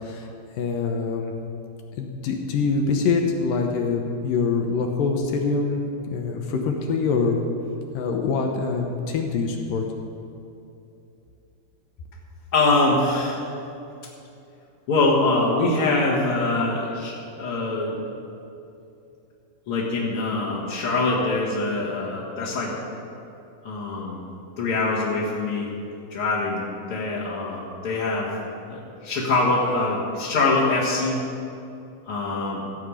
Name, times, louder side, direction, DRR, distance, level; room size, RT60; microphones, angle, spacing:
voice 1, 0.6-1.3 2.0-7.4 7.9-9.8, left 4 dB, 70° left, 2 dB, 2.3 m, -24 dB
voice 2, 12.5-13.4 14.9-18.0 19.7-22.7 23.6-24.3 24.6-25.7 26.1-28.3 28.7-31.2 32.1-32.7, left 2 dB, 50° left, -9 dB, 1.9 m, -24 dB
16.0 x 5.8 x 8.2 m, 2.7 s
omnidirectional pair, 4.6 m